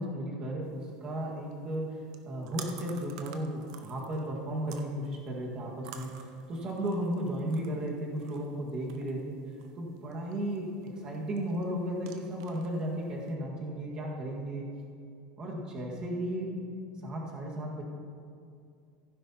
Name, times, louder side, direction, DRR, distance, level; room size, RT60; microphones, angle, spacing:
voice 1, 0.0-6.1 6.5-9.4 9.8-10.7 11.0-14.6 15.4-16.5 17.0-17.8, right 1 dB, 30° right, -2 dB, 1.9 m, -34 dB
sound 1, 0.6-13.3, right 8 dB, 75° right, 0.9 m, -52 dB
16.0 x 9.8 x 3.0 m, 2.4 s
supercardioid pair, 155°, 3 cm